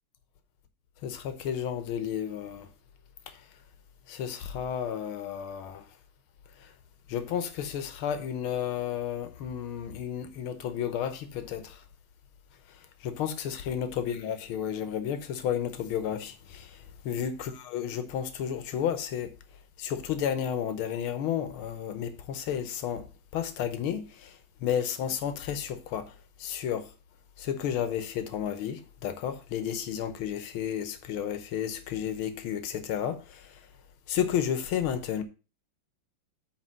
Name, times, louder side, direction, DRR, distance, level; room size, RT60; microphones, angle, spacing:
voice 1, 1.0-2.7 3.3-3.4 4.1-5.9 6.6-6.7 7.1-11.8 13.0-19.3 19.8-23.1 23.3-26.1 26.4-26.9 27.4-33.6 34.1-35.2, left 9 dB, 85° left, 1.8 m, -32 dB
8.9 x 3.5 x 6.2 m
omnidirectional pair, 2.3 m